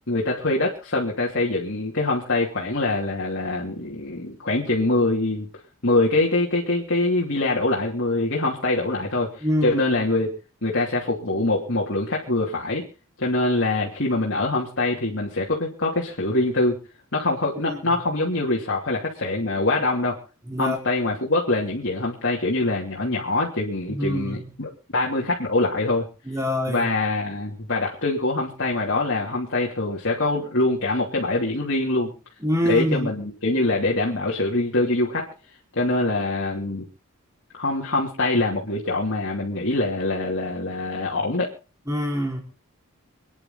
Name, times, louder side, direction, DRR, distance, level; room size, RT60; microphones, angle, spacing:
voice 1, 0.1-5.5 5.8-10.3 10.6-12.8 13.2-16.8 17.1-20.2 20.6-26.1 26.7-32.1 32.7-35.3 35.8-36.9 37.6-41.5, left 2 dB, 55° left, -2 dB, 3.0 m, -24 dB
voice 2, 9.4-9.8 17.7-17.8 20.5-20.8 23.9-24.5 26.3-26.9 32.4-33.1 41.9-42.4, equal, 15° right, 1 dB, 4.7 m, -25 dB
26.5 x 10.0 x 4.0 m, 0.35 s
head